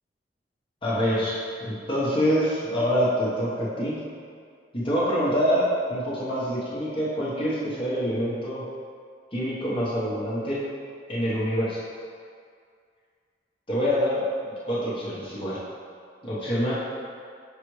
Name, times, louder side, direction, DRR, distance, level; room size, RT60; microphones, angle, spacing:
voice 1, 0.8-4.0 4.7-8.6 9.3-10.6 11.1-11.8 13.7-14.2 14.6-15.6 16.2-16.7, equal, 30° left, -8 dB, 1.2 m, -26 dB
5.8 x 5.0 x 3.2 m, 2.2 s
head